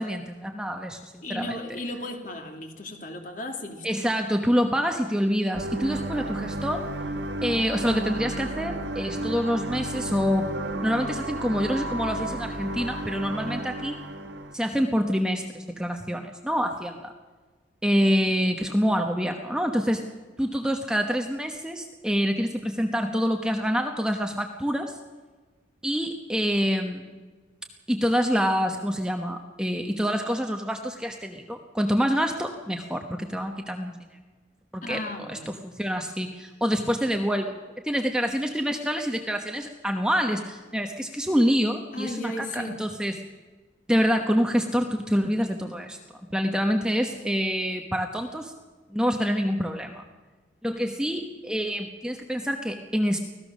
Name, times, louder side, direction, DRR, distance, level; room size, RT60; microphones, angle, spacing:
voice 1, 0.0-1.6 3.8-6.9 7.4-10.5 10.8-14.0 14.5-17.1 17.8-20.0 20.4-25.0 25.8-27.1 27.9-34.0 34.7-35.0 35.3-37.6 37.8-43.2 43.9-46.0 46.3-48.5 48.9-50.0 50.6-53.2, equal, 5° right, 3 dB, 1.0 m, -26 dB
voice 2, 1.2-3.9 34.8-35.5 41.9-42.9 47.0-47.3, left 1 dB, 45° left, 3 dB, 2.7 m, -35 dB
sound 1, 5.5-14.5, right 1 dB, 70° right, 1.3 m, -33 dB
24.5 x 17.0 x 6.4 m, 1.4 s
head